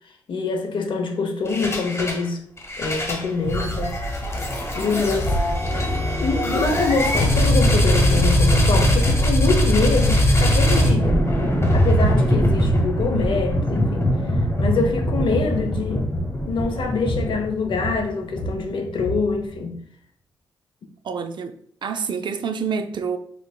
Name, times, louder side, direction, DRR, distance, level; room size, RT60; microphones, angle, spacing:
voice 1, 0.3-2.4 2.8-4.0 4.7-5.4 6.2-11.3 11.7-16.1 16.5-19.8, left 4 dB, 60° left, 0.6 m, -25 dB
sound 1, 1.5-2.2 2.6-19.5, equal, 30° left, 1.0 m, -21 dB
voice 2, 21.0-21.6 21.8-23.2, right 6 dB, 55° right, 0.4 m, -27 dB
4.4 x 2.4 x 2.2 m
supercardioid pair, 50°, 9 cm